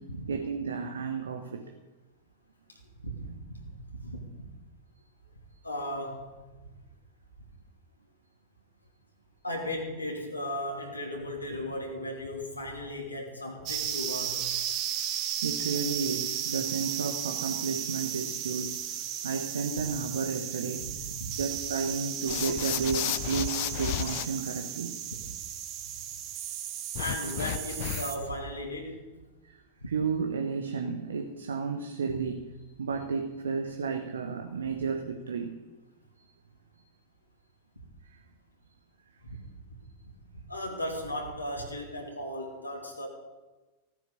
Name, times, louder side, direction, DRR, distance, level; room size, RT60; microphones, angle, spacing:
voice 1, 0.3-1.6 3.3-3.4 14.8-14.9 15.1-18.8 19.2-20.9 21.4-25.0 29.4-29.6 29.9-35.6 36.2-36.3 36.8-36.9 38.1-38.2, right 5 dB, 70° right, 4 dB, 1.2 m, -32 dB
voice 2, 2.7-3.6 3.9-4.2 5.6-6.3 9.4-14.5 20.8-20.9 21.2-21.3 27.0-29.1 29.8-29.9 39.2-39.4 40.3-43.1, left 1 dB, 85° left, -1 dB, 3.0 m, -36 dB
sound 1, 13.7-28.2, right 10 dB, 40° right, 1.8 m, -35 dB
sound 2, 22.3-24.3 26.9-28.3, left 15 dB, 50° left, 0.7 m, -33 dB
16.5 x 9.8 x 6.9 m, 1.2 s
figure-of-eight pair, 90°, 0 cm